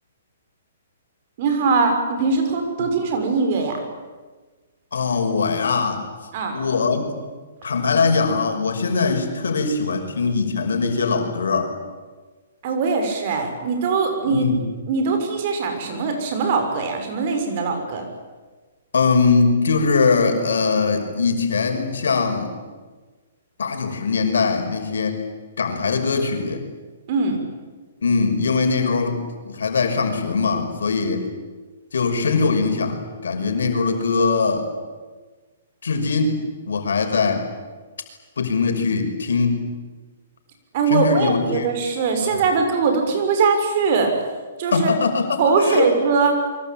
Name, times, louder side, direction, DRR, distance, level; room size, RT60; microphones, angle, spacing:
voice 1, 1.4-3.8 6.3-6.6 12.6-14.5 14.9-18.1 27.1-27.4 40.7-44.1 44.6-44.9 45.4-46.4, right 4 dB, 45° right, 5 dB, 6.6 m, -21 dB
voice 2, 4.9-6.0 6.5-7.1 7.6-11.7 14.2-14.6 18.9-22.5 23.6-25.2 25.6-26.6 28.0-31.3 31.9-34.7 35.8-37.5 38.4-39.6 40.9-41.7 42.2-42.4 44.7-45.9, left 4 dB, 85° left, 5 dB, 5.8 m, -21 dB
26.0 x 23.5 x 9.0 m, 1.3 s
hypercardioid pair, 150°, 0 cm